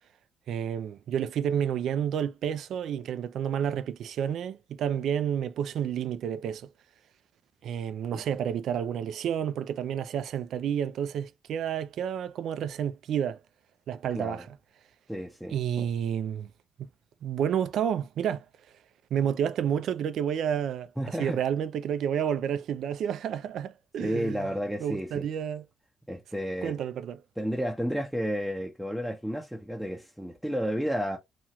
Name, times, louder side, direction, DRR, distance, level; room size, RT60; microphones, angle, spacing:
voice 1, 0.5-6.7 7.6-13.4 13.9-14.6 15.5-16.5 16.8-16.9 17.2-18.4 19.1-24.5 24.8-25.7 26.6-27.2, right 9 dB, 70° right, 0.3 m, -30 dB
voice 2, 15.1-15.5 21.0-21.4 24.0-25.2 26.1-26.8 27.4-31.2, equal, 5° right, 0.5 m, -31 dB
2.9 x 2.3 x 2.8 m
cardioid pair, 90°, 0 cm